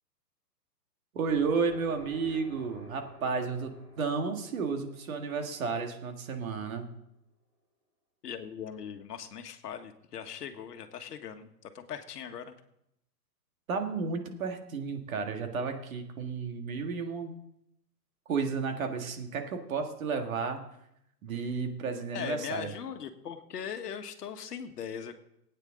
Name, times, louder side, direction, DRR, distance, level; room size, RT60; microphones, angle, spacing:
voice 1, 1.1-6.9 13.7-17.3 18.3-20.7 21.2-22.7, right 5 dB, 55° right, 5 dB, 1.8 m, -32 dB
sound 1, 1.3-6.9, equal, 5° right, 5.8 m, -53 dB
voice 2, 8.2-12.5 22.1-25.2, left 8 dB, 70° left, 7 dB, 1.5 m, -40 dB
19.5 x 9.1 x 3.7 m, 0.80 s
hypercardioid pair, 165°, 50 cm